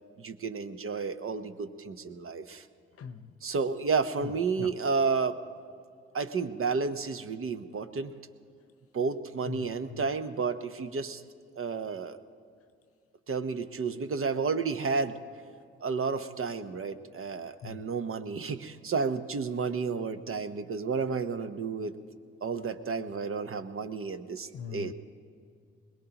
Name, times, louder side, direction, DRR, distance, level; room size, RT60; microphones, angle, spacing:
voice 1, 0.2-2.7 3.4-5.4 6.1-8.1 8.9-11.2 11.6-12.2 13.3-15.2 15.8-21.9 22.4-24.9, right 5 dB, 45° right, 9 dB, 1.0 m, -31 dB
voice 2, 3.0-3.3 4.6-4.7 9.5-10.0 17.6-17.8 24.5-24.9, left 6 dB, 45° left, 11 dB, 0.9 m, -40 dB
22.0 x 20.0 x 3.0 m, 2.2 s
hypercardioid pair, 45°, 31 cm